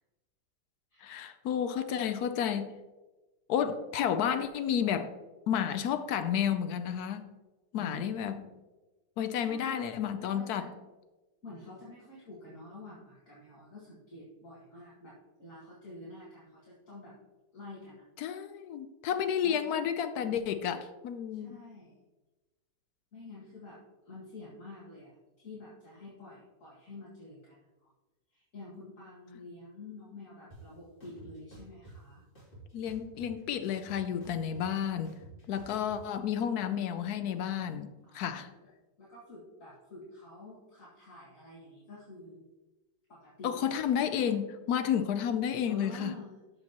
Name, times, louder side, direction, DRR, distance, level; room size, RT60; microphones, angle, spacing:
voice 1, 1.0-2.7 3.5-5.1 5.5-7.3 7.7-8.5 9.2-10.7 18.2-21.6 32.7-35.1 35.5-38.5 43.4-46.1, left 8 dB, 70° left, 1.0 m, -31 dB
voice 2, 7.7-8.6 9.4-9.9 10.3-10.8 11.4-17.1 17.5-18.0 19.4-19.7 21.3-22.0 23.1-23.8 24.1-27.6 27.8-27.9 28.3-32.2 38.0-38.7 39.0-42.4 43.1-44.3 45.6-46.4, left 2 dB, 50° left, 2.5 m, -48 dB
sound 1, 30.5-30.6 31.0-32.0 32.4-33.4 33.7-36.0, right 1 dB, 30° left, 3.0 m, -52 dB
13.0 x 5.3 x 2.9 m
omnidirectional pair, 1.8 m